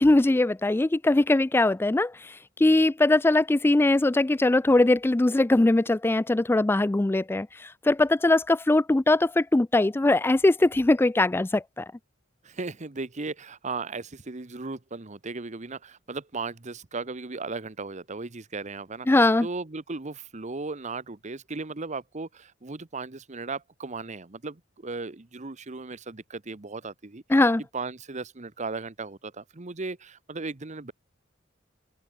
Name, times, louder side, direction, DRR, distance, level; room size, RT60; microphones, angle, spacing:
voice 1, 0.0-11.9 19.1-19.5 27.3-27.6, left 2 dB, 10° left, 0.3 m, -21 dB
voice 2, 12.4-19.1 19.4-27.2 27.7-30.9, right 3 dB, 40° right, 1.0 m, -36 dB
open air
head